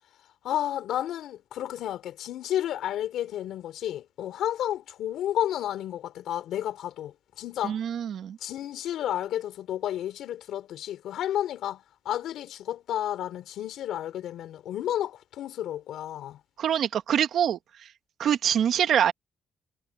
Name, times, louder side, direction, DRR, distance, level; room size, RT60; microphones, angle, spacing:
voice 1, 0.4-7.8 8.4-16.4, left 11 dB, 80° left, 3.4 m, -31 dB
voice 2, 7.6-8.4 16.6-17.6 18.2-19.1, right 9 dB, 65° right, 1.9 m, -24 dB
cardioid pair, 90°, 0 cm